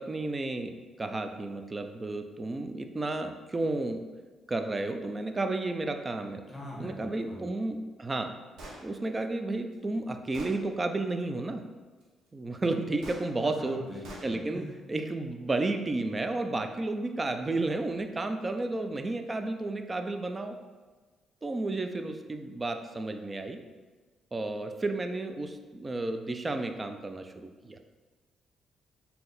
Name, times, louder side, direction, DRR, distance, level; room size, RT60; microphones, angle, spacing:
voice 1, 0.0-4.0 4.5-6.4 6.8-8.3 8.8-11.6 12.3-13.8 14.2-20.6 21.4-23.6 24.3-27.8, right 2 dB, 25° right, 7 dB, 0.4 m, -32 dB
voice 2, 6.5-7.5 13.6-14.7, equal, 15° left, -4 dB, 1.3 m, -42 dB
Gunshot gunfire, 8.6-8.8 9.7-9.8 10.3-10.6 13.0-13.2 14.0-14.3, right 1 dB, 80° right, 0.9 m, -43 dB
3.8 x 2.8 x 3.9 m, 1.4 s
cardioid pair, 90°, 0 cm